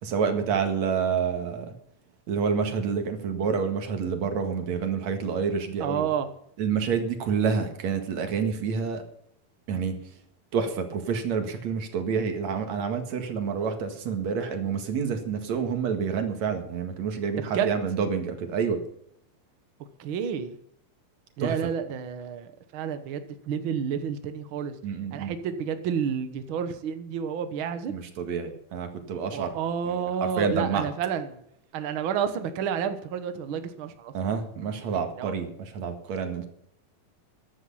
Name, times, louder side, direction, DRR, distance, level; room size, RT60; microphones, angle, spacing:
voice 1, 0.0-1.7 2.3-6.0 6.6-9.0 9.7-9.9 10.5-18.8 21.4-21.5 24.8-25.3 27.9-29.5 30.2-30.9 34.1-35.5 35.7-36.5, right 6 dB, 55° right, 6 dB, 2.9 m, -28 dB
voice 2, 5.8-6.3 17.5-17.7 20.0-20.6 21.4-24.7 25.1-27.9 29.3-31.4 31.7-34.1 34.9-35.3, right 7 dB, 85° right, 9 dB, 1.1 m, -30 dB
15.0 x 11.0 x 5.6 m, 0.70 s
omnidirectional pair, 4.1 m